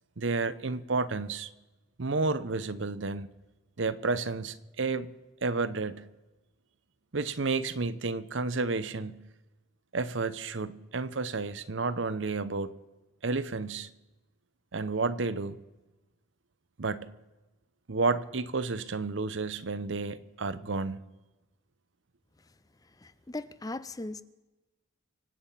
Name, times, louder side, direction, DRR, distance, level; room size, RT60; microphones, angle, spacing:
voice 1, 0.2-1.5 2.0-3.3 3.8-5.1 5.4-6.0 7.1-9.2 9.9-12.7 13.2-13.9 14.7-15.6 16.8-17.1 17.9-21.0, right 3 dB, 70° right, 0.8 m, -31 dB
voice 2, 22.8-24.2, left 2 dB, 20° left, 0.5 m, -39 dB
25.5 x 8.7 x 5.8 m
head